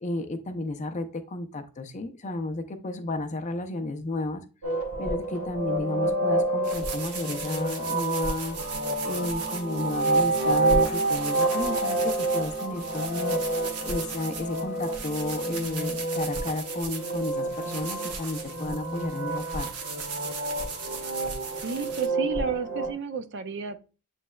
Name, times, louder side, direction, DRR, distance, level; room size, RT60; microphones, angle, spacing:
voice 1, 0.0-4.4 5.0-8.6 9.0-13.4 13.8-19.7, left 2 dB, 35° left, 0.5 m, -32 dB
sound 1, 4.6-22.9, right 2 dB, 70° right, 1.1 m, -29 dB
sound 2, 6.6-22.1, right 5 dB, 90° right, 0.9 m, -39 dB
sound 3, 8.6-15.7, right 1 dB, 15° right, 1.2 m, -44 dB
voice 2, 21.6-23.8, right 5 dB, 55° right, 0.4 m, -31 dB
7.3 x 3.1 x 2.2 m
head